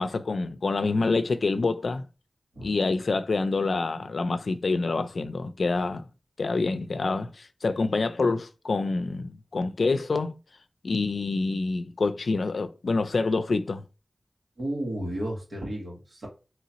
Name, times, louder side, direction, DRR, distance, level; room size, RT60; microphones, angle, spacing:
voice 1, 0.0-2.0 2.6-6.1 6.4-10.4 10.8-13.8, left 3 dB, 85° left, 0.4 m, -27 dB
voice 2, 14.6-16.3, right 1 dB, 85° right, 1.9 m, -33 dB
4.0 x 3.1 x 2.9 m
wide cardioid pair, 80°, 0 cm